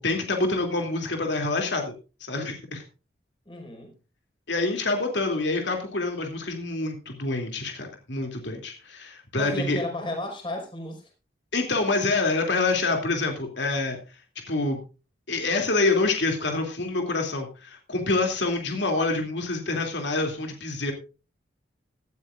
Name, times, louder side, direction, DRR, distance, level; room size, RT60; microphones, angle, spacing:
voice 1, 0.0-1.9 2.2-2.8 4.5-9.8 11.5-14.0 14.5-14.8 15.3-20.9, left 3 dB, 75° left, 3 dB, 2.9 m, -26 dB
voice 2, 3.4-3.9 9.3-11.1, left 1 dB, 25° left, 2 dB, 5.3 m, -33 dB
17.5 x 13.0 x 2.5 m, 0.33 s
head